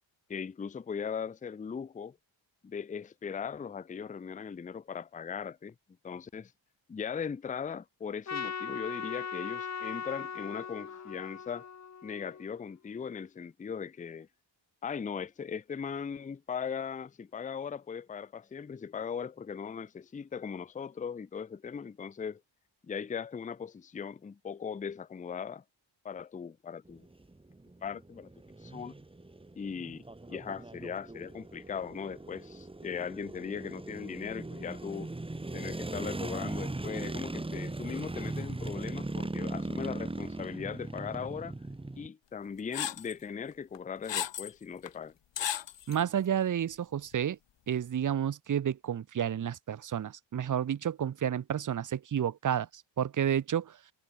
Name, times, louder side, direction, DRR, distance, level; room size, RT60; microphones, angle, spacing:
voice 1, 0.3-2.2 2.6-5.7 6.0-6.5 6.9-11.7 12.0-14.3 14.8-22.4 22.8-25.6 26.0-27.1 27.8-28.3 28.6-28.9 29.6-35.1 35.5-41.5 42.0-45.1, left 6 dB, 15° left, 0.4 m, -39 dB
Trumpet, 8.3-12.6, left 6 dB, 35° left, 1.1 m, -39 dB
sound 1, 26.9-42.1, right 2 dB, 10° right, 1.6 m, -39 dB
sound 2, 42.7-43.1 43.7-44.5 44.9-45.0 45.4-46.0, left 11 dB, 60° left, 1.0 m, -34 dB
voice 2, 45.9-47.4 47.7-53.8, right 9 dB, 40° right, 0.7 m, -31 dB
wide cardioid pair, 165°, 49 cm